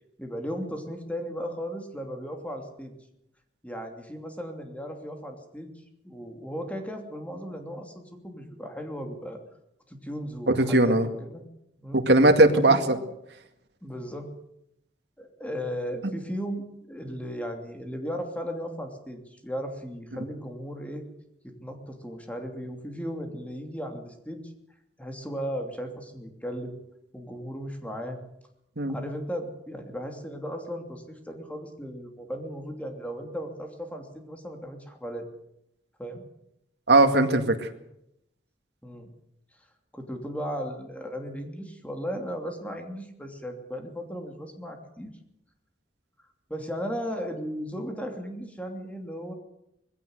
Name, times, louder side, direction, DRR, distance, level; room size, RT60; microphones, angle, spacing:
voice 1, 0.2-2.9 3.6-5.7 6.0-9.4 9.9-11.4 11.8-12.0 12.7-13.0 13.8-14.3 15.2-21.0 21.6-24.4 25.0-26.7 27.1-28.2 28.9-35.2 36.0-36.2 38.8-39.1 39.9-45.2 46.5-49.3, equal, 10° left, 4 dB, 2.9 m, -36 dB
voice 2, 10.5-11.1 11.9-13.0 28.8-29.0 36.9-37.7, right 2 dB, 75° right, 6 dB, 2.1 m, -19 dB
20.5 x 16.5 x 8.0 m, 0.81 s
head